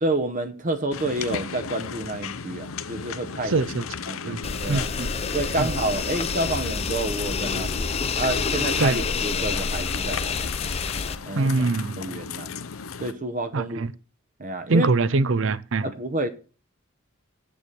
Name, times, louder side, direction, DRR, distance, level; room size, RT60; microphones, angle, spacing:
voice 1, 0.0-3.7 4.1-4.9 5.3-10.5 11.3-11.5 12.0-12.5 13.0-13.9 14.4-14.9 15.8-16.3, right 2 dB, 35° right, 0.9 m, -29 dB
sound 1, 0.9-13.1, left 6 dB, 75° left, 0.7 m, -35 dB
voice 2, 3.5-3.8 4.3-4.4 4.7-5.1 5.6-5.7 8.8-9.0 11.4-12.0 13.5-13.9 14.7-15.9, right 3 dB, 65° right, 0.6 m, -23 dB
sound 2, 4.4-11.2, left 5 dB, 30° left, 0.5 m, -28 dB
8.0 x 7.0 x 6.8 m
head